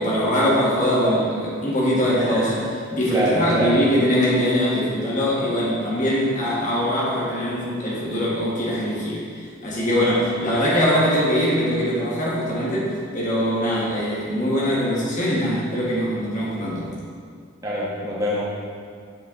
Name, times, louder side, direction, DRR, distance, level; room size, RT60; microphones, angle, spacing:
voice 1, 0.0-2.5 2.9-9.2 9.6-16.9, equal, 40° left, -6 dB, 1.7 m, -22 dB
voice 2, 2.0-2.7 3.1-3.8 17.6-18.4, equal, 15° right, -7 dB, 1.3 m, -25 dB
9.0 x 4.4 x 3.9 m, 2.2 s
head